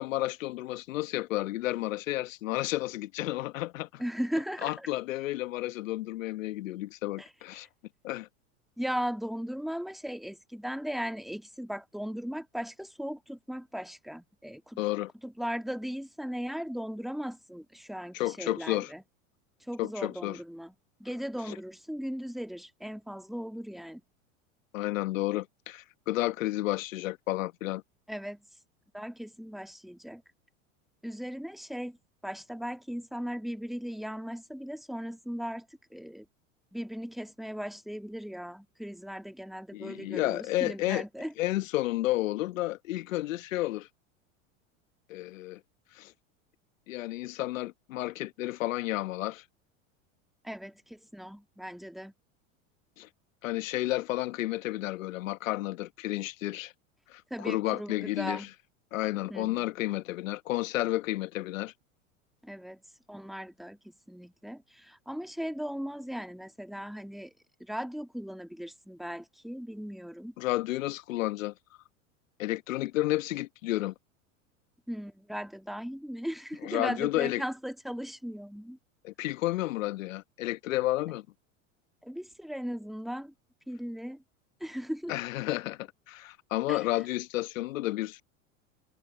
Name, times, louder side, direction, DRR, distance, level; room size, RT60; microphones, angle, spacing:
voice 1, 0.0-4.0 4.6-7.7 8.0-8.3 14.8-15.1 18.1-18.9 19.8-20.4 21.5-21.6 24.7-27.8 39.7-41.0 41.4-43.9 45.1-45.6 45.9-46.1 46.9-49.4 53.0-53.1 53.4-56.7 57.1-58.5 58.9-61.7 70.4-71.5 72.4-73.9 76.6-77.4 79.0-81.3 85.1-88.2, left 17 dB, 75° left, 1.2 m, -31 dB
voice 2, 4.0-4.9 7.2-7.7 8.8-14.8 15.2-19.0 19.7-20.7 21.0-24.0 28.1-28.4 28.9-30.2 31.0-32.0 32.2-36.3 36.7-41.3 50.4-52.1 57.3-58.5 59.3-59.6 62.4-62.8 63.1-67.3 67.6-70.3 74.9-78.8 82.0-83.3 83.7-84.2 84.6-85.1 86.7-86.9, equal, ahead, 2.1 m, -37 dB
hypercardioid pair, 95°, 40 cm